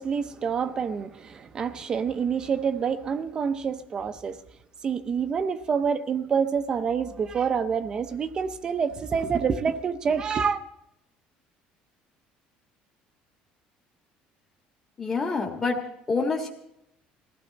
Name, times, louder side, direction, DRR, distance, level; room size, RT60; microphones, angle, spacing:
voice 1, 0.0-4.4 4.8-10.6, right 6 dB, 25° right, 0.7 m, -27 dB
voice 2, 15.0-16.5, left 4 dB, 20° left, 1.5 m, -27 dB
22.0 x 15.5 x 4.1 m
cardioid pair, 175°, 3 cm